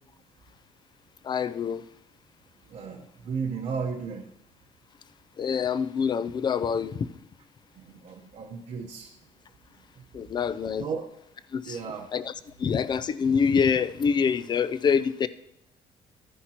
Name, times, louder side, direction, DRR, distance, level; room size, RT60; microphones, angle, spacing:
voice 1, 1.2-1.8 5.4-7.1 10.1-10.9 11.5-11.8 12.1-12.3 12.6-15.3, left 6 dB, 30° left, 15 dB, 0.4 m, -25 dB
voice 2, 2.7-4.3 7.8-9.1 10.1-10.2 10.8-11.1 11.6-12.1, right 5 dB, 55° right, 0 dB, 1.0 m, -34 dB
12.5 x 10.0 x 2.9 m, 0.84 s
cardioid pair, 135°, 14 cm